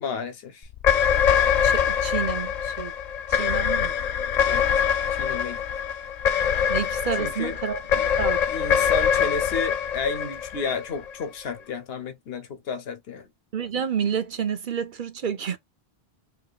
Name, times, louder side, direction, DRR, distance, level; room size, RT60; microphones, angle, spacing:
voice 1, 0.0-0.7 4.4-4.7 5.1-5.6 7.2-7.6 8.5-13.3, left 5 dB, 70° left, 1.0 m, -32 dB
sound 1, 0.7-11.2, left 8 dB, 55° left, 0.5 m, -24 dB
voice 2, 1.6-2.9 3.3-3.9 6.7-8.4 13.5-15.6, right 7 dB, 55° right, 0.7 m, -29 dB
4.7 x 2.9 x 2.3 m
omnidirectional pair, 1.1 m